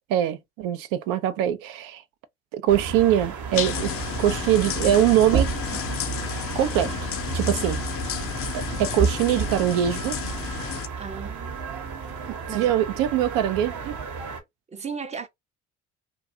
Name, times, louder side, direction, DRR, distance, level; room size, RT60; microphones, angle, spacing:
voice 1, 0.1-2.0 2.5-3.9 4.2-5.8 6.6-6.9 7.3-7.8 8.5-10.2 12.3-14.0, right 11 dB, 75° right, 0.5 m, -23 dB
sound 1, 2.7-14.4, right 5 dB, 55° right, 1.0 m, -31 dB
sound 2, 3.5-10.9, left 11 dB, 40° left, 0.4 m, -32 dB
voice 2, 11.0-12.7 14.7-15.3, right 5 dB, 20° right, 0.5 m, -37 dB
2.5 x 2.2 x 2.7 m
hypercardioid pair, 65°, 34 cm